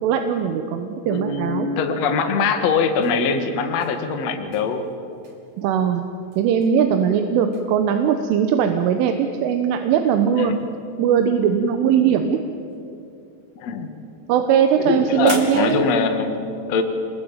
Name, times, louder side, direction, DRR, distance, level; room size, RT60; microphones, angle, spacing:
voice 1, 0.0-1.7 5.6-6.0 6.4-10.5 11.0-12.4 14.3-15.8, right 8 dB, 85° right, 6 dB, 3.7 m, -20 dB
voice 2, 1.0-4.8 10.4-10.7 13.6-13.9 14.8-16.8, left 5 dB, 50° left, 6 dB, 2.1 m, -22 dB
sound 1, 2.8-10.8 11.1-11.8 12.0-15.9, right 3 dB, 35° right, 3.8 m, -40 dB
28.0 x 21.5 x 9.0 m, 2.6 s
omnidirectional pair, 5.5 m